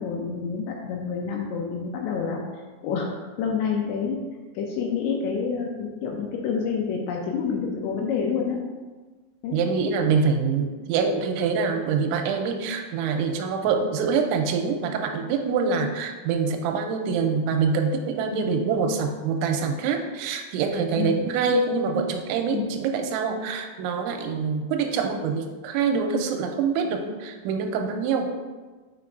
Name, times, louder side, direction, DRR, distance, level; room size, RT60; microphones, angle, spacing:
voice 1, 0.0-2.4 2.8-3.1 3.4-4.2 4.6-8.6 9.4-9.6 18.3-18.6 21.0-21.3 22.5-22.7, left 6 dB, 85° left, 0 dB, 2.6 m, -28 dB
voice 2, 9.5-28.3, right 5 dB, 90° right, 4 dB, 3.0 m, -25 dB
7.2 x 6.0 x 2.5 m, 1.3 s
omnidirectional pair, 5.4 m